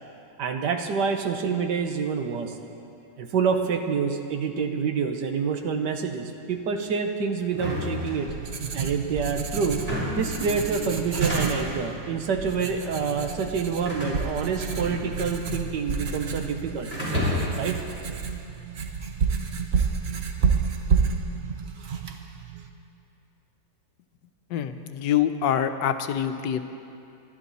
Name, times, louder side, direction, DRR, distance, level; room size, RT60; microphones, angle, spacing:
voice 1, 0.4-2.5 3.2-8.3 8.7-9.9 10.1-16.9 17.6-17.8, right 5 dB, 75° right, 5 dB, 1.6 m, -27 dB
sound 1, 7.5-8.7 9.7-10.3 11.0-11.8 12.6-13.0 13.8-15.4 15.6-16.4 16.9-17.7, left 1 dB, 20° right, 4.3 m, -31 dB
Writing, 7.9-22.7, right 6 dB, 50° right, 0.9 m, -30 dB
voice 2, 24.5-26.6, left 9 dB, 85° left, 8 dB, 1.4 m, -25 dB
23.0 x 11.5 x 4.1 m, 2.8 s
omnidirectional pair, 1.9 m